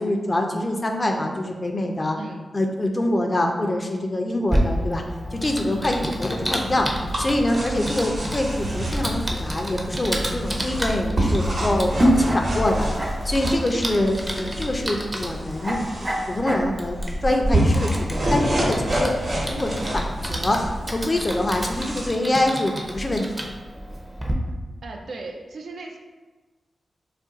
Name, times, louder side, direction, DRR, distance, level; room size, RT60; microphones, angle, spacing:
voice 1, 0.0-2.2 2.5-5.0 5.3-6.9 7.2-12.9 13.2-15.8 16.3-19.1 19.5-20.6 20.9-23.5, left 1 dB, 35° left, 3 dB, 0.4 m, -25 dB
Typing, 4.5-24.3, equal, 20° right, 0.5 m, -29 dB
sound 1, 5.2-13.4, left 1 dB, 80° left, 0.9 m, -36 dB
sound 2, 6.6-22.1, right 1 dB, 55° right, 1.0 m, -28 dB
voice 2, 24.8-26.0, right 2 dB, 75° right, 2 dB, 0.4 m, -36 dB
2.5 x 2.2 x 3.8 m, 1.3 s
cardioid pair, 55°, 0 cm